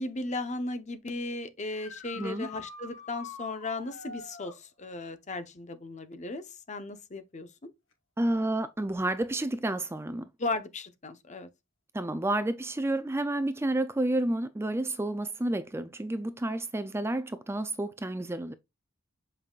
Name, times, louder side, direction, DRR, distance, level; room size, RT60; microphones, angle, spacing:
voice 1, 0.0-7.7 10.4-11.5, left 2 dB, 35° left, 0.9 m, -36 dB
sound 1, 1.6-4.6 7.9-8.0 10.1-10.2 16.4-16.5, left 4 dB, 75° left, 2.6 m, -45 dB
voice 2, 2.2-2.5 8.2-10.3 11.9-18.5, right 1 dB, 15° right, 0.4 m, -30 dB
7.7 x 5.5 x 2.4 m
head